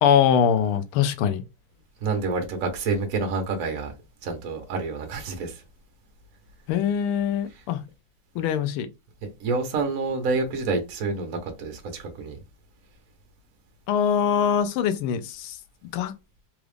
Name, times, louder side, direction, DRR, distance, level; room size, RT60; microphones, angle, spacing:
voice 1, 0.0-1.4 6.7-7.8 8.3-8.9 13.9-15.6 15.9-16.1, left 8 dB, 90° left, 1.5 m, -22 dB
voice 2, 2.0-3.9 4.2-5.6 9.4-12.4, right 3 dB, 55° right, 1.1 m, -28 dB
3.9 x 2.4 x 3.2 m
omnidirectional pair, 2.3 m